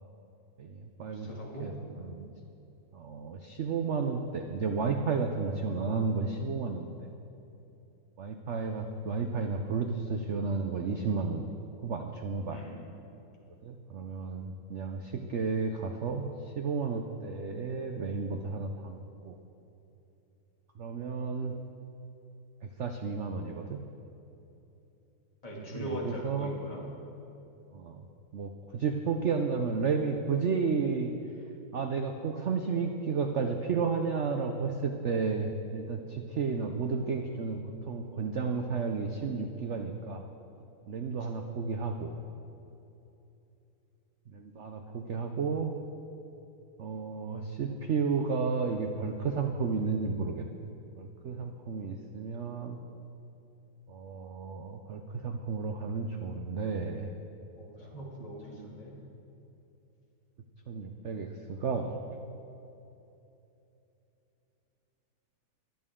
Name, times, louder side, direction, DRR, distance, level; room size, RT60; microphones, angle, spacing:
voice 1, 0.6-1.3 1.6-2.3 2.9-6.9 8.2-11.5 11.8-12.6 13.6-19.4 20.8-21.5 22.8-23.8 25.6-26.5 27.7-28.1 28.3-31.1 31.7-37.6 37.9-40.2 40.9-42.1 44.3-45.7 46.8-50.7 51.0-52.8 53.9-57.1 57.8-58.0 58.6-58.7 60.7-62.0, right 5 dB, 90° right, 4 dB, 0.6 m, -32 dB
voice 2, 1.1-1.8 12.5-12.9 25.4-26.9 57.6-58.9, equal, 20° left, -4 dB, 2.3 m, -40 dB
25.5 x 8.8 x 3.7 m, 3.0 s
omnidirectional pair, 2.1 m